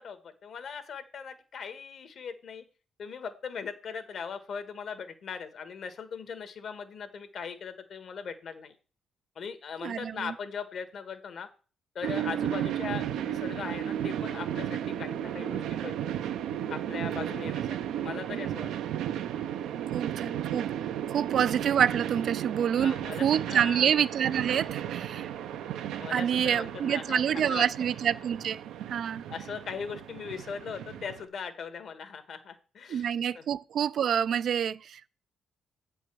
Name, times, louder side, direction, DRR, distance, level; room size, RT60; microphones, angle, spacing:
voice 1, 0.0-2.6 3.0-8.7 9.3-11.5 11.9-16.1 16.7-18.7 21.2-21.3 22.8-23.9 26.0-27.8 29.3-33.4, left 6 dB, 60° left, 1.5 m, -39 dB
voice 2, 9.8-10.3 19.9-20.7 21.1-22.9 23.2-25.3 26.1-28.6 28.9-29.2 32.9-35.1, right 8 dB, 65° right, 0.4 m, -27 dB
sound 1, 12.0-31.2, right 10 dB, 85° right, 0.8 m, -34 dB
8.4 x 5.4 x 6.2 m
cardioid pair, 90°, 0 cm